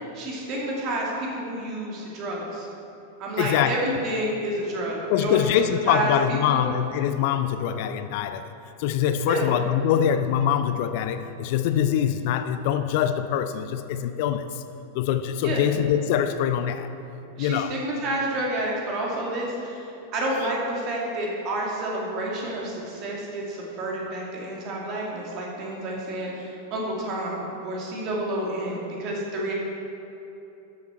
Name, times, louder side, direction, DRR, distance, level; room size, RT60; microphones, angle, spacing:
voice 1, 0.1-2.7 3.2-5.4 5.9-6.6 9.3-9.5 15.4-15.6 17.4-19.8 20.1-29.5, right 1 dB, 40° right, -3 dB, 2.4 m, -29 dB
voice 2, 3.4-3.8 5.1-8.5 8.8-14.6 14.9-16.9 17.4-17.8 20.4-20.5, left 9 dB, 50° left, 10 dB, 0.4 m, -24 dB
13.0 x 7.1 x 4.4 m, 3.0 s
figure-of-eight pair, 90°, 0 cm